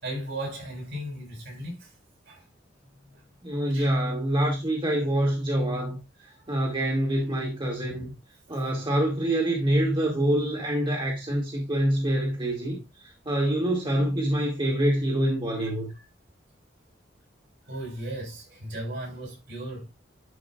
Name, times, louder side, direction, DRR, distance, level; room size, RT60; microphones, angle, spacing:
voice 1, 0.0-1.9 2.3-2.4 3.0-3.2 3.7-3.9 6.3-6.7 7.9-8.0 8.5-8.6 15.9-16.1 17.7-19.9, right 1 dB, 65° right, 5.7 m, -37 dB
voice 2, 3.4-6.0 6.5-8.1 8.5-12.8 13.3-15.9, right 1 dB, 25° right, 2.1 m, -25 dB
11.5 x 5.6 x 2.3 m
head